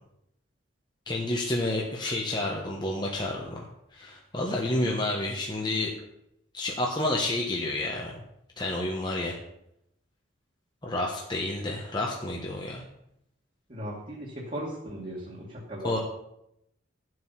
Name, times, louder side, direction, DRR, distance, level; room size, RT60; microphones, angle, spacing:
voice 1, 1.1-3.7 3.9-5.9 6.5-8.2 8.6-9.4 10.8-12.8 15.8-16.0, left 1 dB, 20° left, -2 dB, 1.3 m, -30 dB
voice 2, 13.7-16.0, right 1 dB, 35° right, -6 dB, 2.3 m, -37 dB
12.0 x 7.9 x 5.9 m, 0.79 s
head